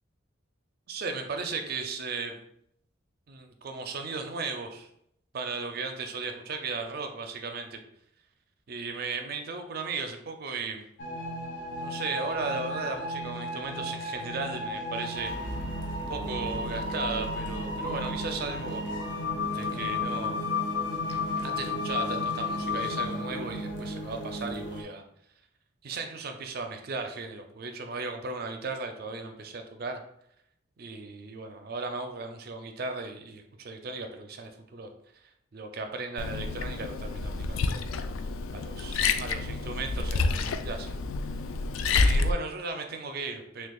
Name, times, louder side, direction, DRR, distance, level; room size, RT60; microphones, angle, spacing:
voice 1, 0.9-2.4 3.3-4.9 5.3-7.8 8.7-10.9 11.8-15.3 16.1-18.8 19.5-20.4 21.4-25.0 25.8-30.0 30.8-34.9 35.5-37.8 38.5-40.9 42.0-43.7, right 4 dB, 50° right, 5 dB, 0.4 m, -36 dB
sound 1, 11.0-24.8, left 2 dB, 60° left, 0.8 m, -33 dB
Liquid, 36.2-42.3, left 3 dB, 85° left, 0.3 m, -28 dB
6.2 x 2.3 x 2.3 m, 0.73 s
head